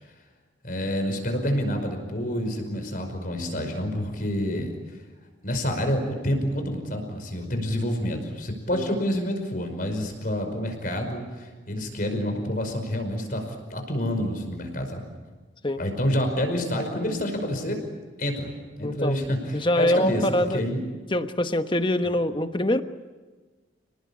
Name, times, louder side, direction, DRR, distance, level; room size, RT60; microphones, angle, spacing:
voice 1, 0.6-4.7 5.4-15.0 15.8-17.8 18.2-20.9 22.0-22.1, equal, 45° left, 5 dB, 5.3 m, -28 dB
voice 2, 18.8-19.2 19.5-20.6 21.1-22.8, left 1 dB, 25° left, 9 dB, 1.1 m, -24 dB
29.5 x 19.5 x 8.5 m, 1.4 s
head